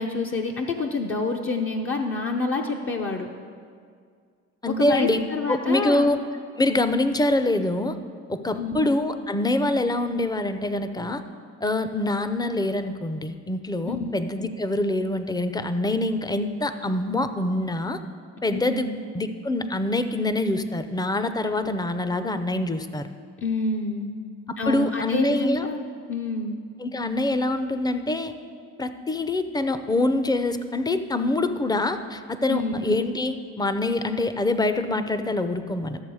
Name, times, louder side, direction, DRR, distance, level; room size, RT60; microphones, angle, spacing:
voice 1, 0.0-3.3 4.8-6.1 8.5-8.9 13.8-14.2 18.5-19.1 21.6-21.7 23.4-24.1 24.6-25.8 26.1-26.6 32.5-33.0, left 3 dB, 45° left, 2 dB, 0.8 m, -28 dB
voice 2, 4.6-5.2 5.5-6.2 6.6-8.0 8.3-11.2 11.6-18.0 18.4-18.9 19.1-23.1 24.7-25.7 26.8-28.3 28.8-36.0, left 2 dB, 15° left, 10 dB, 0.6 m, -25 dB
13.0 x 6.9 x 4.8 m, 2.1 s
cardioid pair, 90°, 30 cm